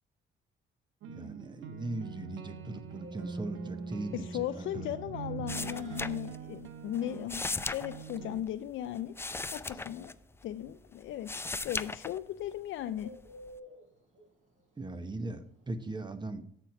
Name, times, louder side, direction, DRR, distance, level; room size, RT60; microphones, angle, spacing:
sound 1, 1.0-8.4, right 6 dB, 85° right, 0.7 m, -43 dB
voice 1, 1.1-4.9 5.4-5.5 14.8-16.4, right 2 dB, 20° right, 10 dB, 1.0 m, -39 dB
Bird, 3.0-16.0, equal, 40° right, 3.4 m, -56 dB
voice 2, 4.1-7.4 7.7-9.1 9.5-10.1 10.4-13.1, left 12 dB, 75° left, 9 dB, 0.5 m, -37 dB
sound 2, 5.5-6.7 6.9-10.7 11.1-12.5 13.0-13.6, left 3 dB, 10° left, 0.4 m, -38 dB
8.0 x 4.5 x 5.9 m, 0.68 s
cardioid pair, 90°, 20 cm